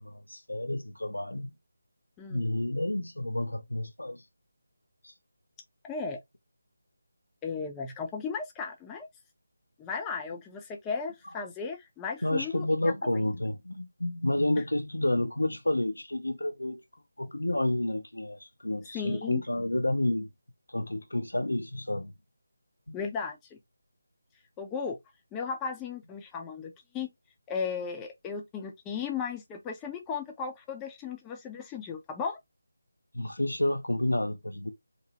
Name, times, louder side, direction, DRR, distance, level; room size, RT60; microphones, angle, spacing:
voice 1, 0.0-1.5 2.3-4.2 5.0-5.1 12.2-16.8 17.2-20.3 20.7-22.1 22.9-23.0 33.1-34.7, left 1 dB, 80° left, 0.7 m, -30 dB
voice 2, 2.2-2.5 5.8-6.2 7.4-9.1 9.8-12.9 18.9-19.4 22.9-23.6 24.6-25.0 25.3-27.1 27.5-32.4, left 5 dB, 10° left, 0.4 m, -35 dB
2.6 x 2.0 x 2.8 m
figure-of-eight pair, 160°, 0 cm